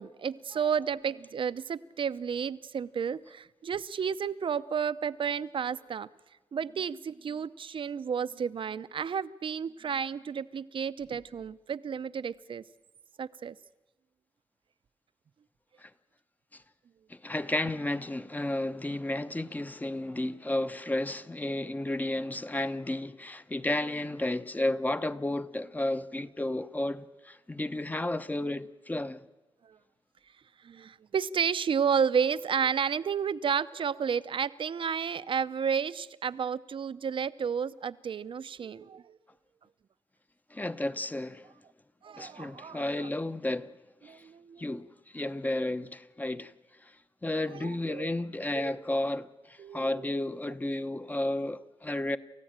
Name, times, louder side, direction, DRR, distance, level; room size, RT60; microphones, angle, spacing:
voice 1, 0.0-6.1 6.5-12.6 13.2-13.6 29.6-29.8 30.6-39.2 42.0-42.8 44.0-44.7 47.5-48.1 48.5-48.8 49.6-50.1, right 7 dB, 60° right, 0.7 m, -32 dB
voice 2, 17.1-29.2 40.5-41.5 42.2-43.7 44.0-44.2 44.6-46.5 46.8-46.9 47.2-52.2, left 1 dB, 15° left, 0.9 m, -32 dB
28.5 x 15.0 x 8.9 m
wide cardioid pair, 100°, 10 cm